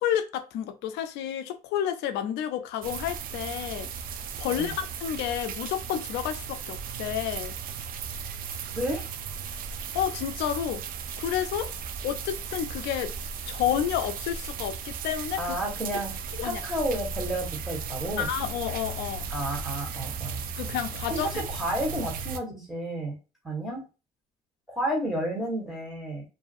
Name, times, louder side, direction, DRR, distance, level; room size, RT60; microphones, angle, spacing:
voice 1, 0.0-3.9 4.4-7.6 9.9-10.8 11.2-11.7 12.0-13.1 13.5-15.5 16.3-16.6 18.2-19.3 20.6-21.3, left 10 dB, 85° left, 0.4 m, -30 dB
sound 1, 2.8-22.4, right 6 dB, 60° right, 0.4 m, -36 dB
voice 2, 8.7-9.1 15.4-16.1 16.4-18.3 19.3-20.4 21.1-23.2 23.4-23.8 24.7-26.2, right 1 dB, ahead, 1.4 m, -31 dB
2.6 x 2.4 x 2.5 m
cardioid pair, 110°, 17 cm